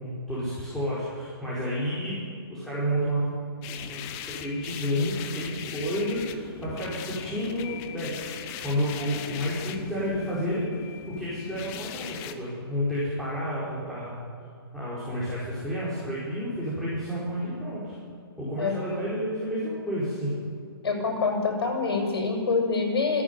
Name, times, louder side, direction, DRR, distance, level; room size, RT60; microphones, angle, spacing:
voice 1, 0.0-3.2 3.8-8.3 8.6-10.7 11.1-14.2 14.7-18.0 18.4-20.3, equal, ahead, -10 dB, 5.0 m, -30 dB
sound 1, 3.6-12.3, left 9 dB, 20° left, 1.1 m, -39 dB
voice 2, 20.8-23.2, left 4 dB, 70° left, 2 dB, 7.3 m, -26 dB
27.0 x 11.0 x 9.8 m, 2.4 s
hypercardioid pair, 155°, 13 cm